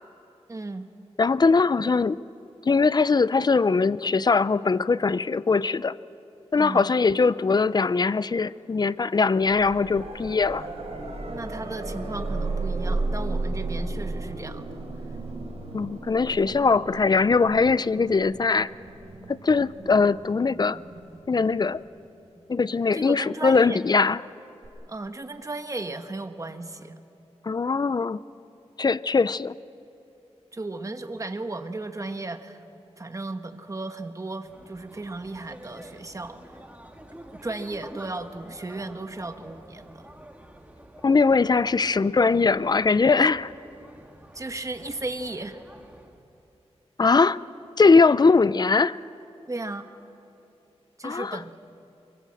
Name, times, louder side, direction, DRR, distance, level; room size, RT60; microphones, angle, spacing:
voice 1, 0.5-0.9 6.6-6.9 11.3-14.8 22.9-23.8 24.9-27.0 30.5-32.6 33.0-36.4 37.3-40.1 44.3-45.6 49.5-49.9 51.0-51.6, right 2 dB, 30° right, 7 dB, 1.4 m, -35 dB
voice 2, 1.2-2.2 2.6-6.0 6.5-10.7 15.7-18.7 19.3-20.8 21.3-21.8 22.5-24.2 27.4-28.2 28.8-29.5 41.0-43.5 47.0-47.4 47.8-49.0 51.0-51.4, left 4 dB, 40° left, 18 dB, 0.5 m, -21 dB
sound 1, 9.4-22.3 24.6-24.7, right 2 dB, 70° right, 4.4 m, -34 dB
sound 2, 34.4-46.2, right 1 dB, 15° right, 2.0 m, -48 dB
24.5 x 23.0 x 7.7 m, 2.8 s
wide cardioid pair, 85°, 11 cm